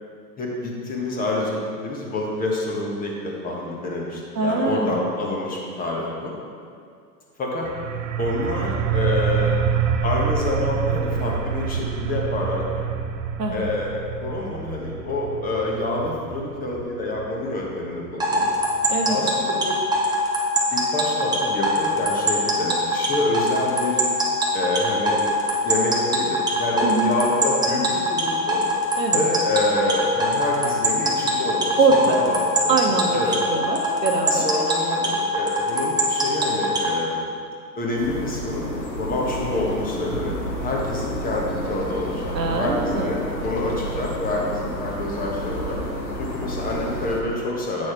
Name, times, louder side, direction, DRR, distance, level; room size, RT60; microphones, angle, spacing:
voice 1, 0.4-6.3 7.4-7.7 8.2-9.5 10.0-12.9 13.5-18.4 19.1-19.8 20.7-24.0 24.5-25.2 25.6-28.6 29.1-32.8 33.1-33.4 34.3-37.3 37.8-38.7 39.0-40.3 40.6-45.8 46.2-47.9, left 2 dB, 15° left, -2 dB, 1.3 m, -27 dB
voice 2, 4.3-5.0 13.4-13.7 18.9-19.2 26.8-27.2 29.0-29.2 31.8-32.2 32.7-33.2 33.5-34.5 42.3-43.2, right 4 dB, 75° right, 2 dB, 1.2 m, -23 dB
sound 1, 7.6-19.1, right 8 dB, 50° right, 0.6 m, -27 dB
sound 2, 18.2-36.9, right 1 dB, 10° right, 0.9 m, -22 dB
sound 3, 38.0-47.2, equal, 85° left, 1.4 m, -30 dB
8.6 x 6.2 x 4.5 m, 2.3 s
figure-of-eight pair, 105°, 50 cm